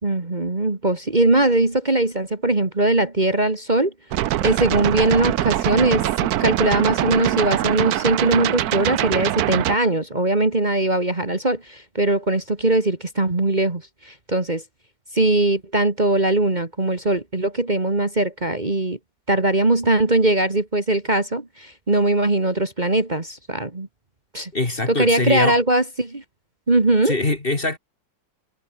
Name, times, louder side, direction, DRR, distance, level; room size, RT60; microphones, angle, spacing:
voice 1, 0.0-3.9 4.4-14.6 15.1-19.0 19.3-23.9 24.3-24.5 24.9-26.2 26.7-27.1, right 2 dB, 25° right, 2.2 m, -20 dB
sound 1, 4.1-9.8, right 13 dB, 65° right, 1.1 m, -23 dB
voice 2, 24.5-25.6 27.0-27.8, left 2 dB, 30° left, 2.6 m, -23 dB
omnidirectional pair, 1.9 m